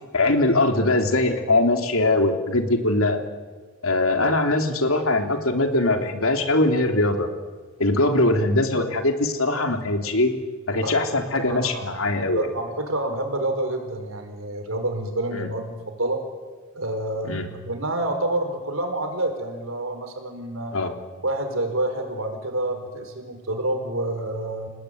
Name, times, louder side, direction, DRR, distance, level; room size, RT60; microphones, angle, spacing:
voice 1, 0.1-3.2 3.8-7.3 7.8-10.3 10.7-12.5 15.3-15.5 17.2-17.5 20.7-20.9, left 2 dB, 85° left, 5 dB, 3.3 m, -21 dB
voice 2, 11.4-11.8 12.2-16.2 16.7-20.8 21.2-24.7, right 1 dB, 75° right, 6 dB, 5.0 m, -28 dB
30.0 x 18.5 x 9.4 m, 1.4 s
head